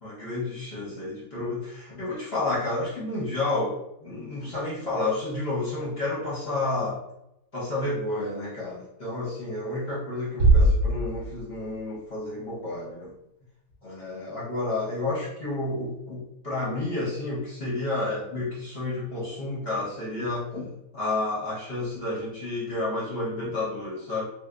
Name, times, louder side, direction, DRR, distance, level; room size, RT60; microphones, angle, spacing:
voice 1, 0.0-7.0 7.5-13.1 13.8-24.2, left 2 dB, 45° left, -6 dB, 1.0 m, -30 dB
Bass drum, 10.4-11.8, right 2 dB, 70° right, 1.4 m, -21 dB
3.3 x 2.9 x 2.4 m, 0.83 s
omnidirectional pair, 1.7 m